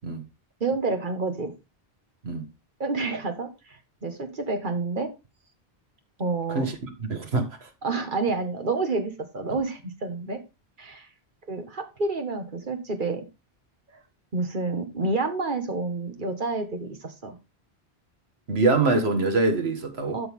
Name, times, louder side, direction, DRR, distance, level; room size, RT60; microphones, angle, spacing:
voice 1, 0.6-1.5 2.8-5.1 6.2-6.6 7.8-10.4 10.8-11.1 11.5-13.2 14.3-17.4 20.1-20.3, right 3 dB, 50° right, 1.6 m, -29 dB
voice 2, 7.1-7.7 18.5-20.2, right 3 dB, 75° right, 1.8 m, -24 dB
12.5 x 4.7 x 3.6 m
omnidirectional pair, 1.1 m